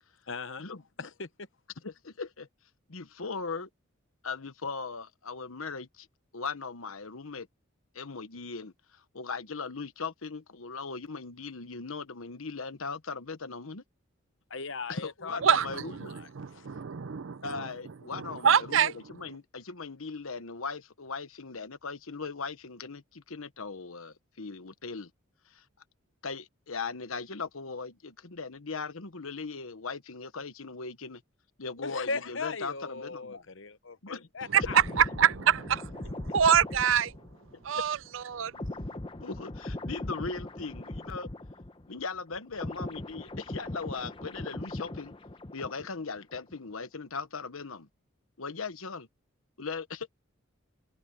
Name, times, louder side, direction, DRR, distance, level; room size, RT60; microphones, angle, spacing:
voice 1, 0.3-0.7 1.0-1.5 14.5-15.4 16.1-16.7 31.8-34.8, left 4 dB, 60° left, 1.0 m, -38 dB
voice 2, 1.8-2.5 2.9-3.7 4.2-6.1 6.3-7.5 7.9-13.8 14.9-16.1 17.4-25.1 25.5-25.6 26.2-31.2 31.6-33.4 34.0-34.3 39.2-41.3 41.9-45.1 45.5-47.9 48.4-49.1 49.6-50.1, left 4 dB, 80° left, 1.2 m, -39 dB
voice 3, 15.4-17.7 18.1-18.9 34.5-34.6 35.0-37.1 37.6-38.5, right 8 dB, 65° right, 0.5 m, -26 dB
sound 1, 34.5-42.0 42.3-46.0 46.3-46.6, left 1 dB, 25° left, 0.8 m, -39 dB
head